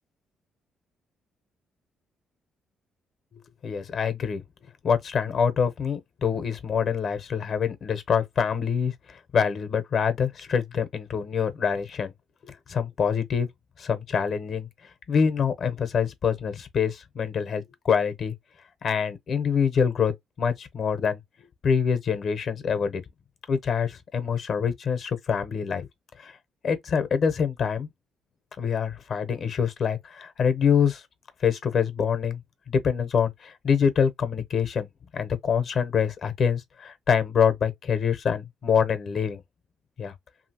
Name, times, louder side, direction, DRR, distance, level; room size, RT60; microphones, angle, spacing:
voice 1, 3.6-4.4 4.8-12.1 12.4-13.5 13.8-14.7 15.1-18.3 18.8-21.2 21.6-23.0 23.5-25.9 26.2-26.3 26.6-27.9 28.6-31.0 31.4-32.4 32.7-34.9 35.1-39.4 40.0-40.1, left 7 dB, 60° left, 0.7 m, -25 dB
2.8 x 2.7 x 2.8 m
cardioid pair, 90°, 0 cm